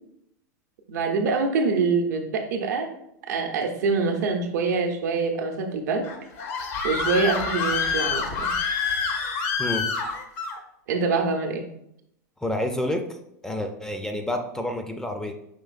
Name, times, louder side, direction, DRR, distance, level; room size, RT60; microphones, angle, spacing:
voice 1, 0.9-2.9 3.3-6.1 6.8-8.5 10.9-11.6, right 4 dB, 75° right, 4 dB, 0.7 m, -25 dB
Screaming, 6.0-10.6, left 5 dB, 60° left, 0.7 m, -27 dB
voice 2, 12.4-13.1 13.4-15.3, left 1 dB, 5° left, 5 dB, 0.4 m, -28 dB
5.1 x 3.0 x 2.4 m, 0.77 s
hypercardioid pair, 110°, 9 cm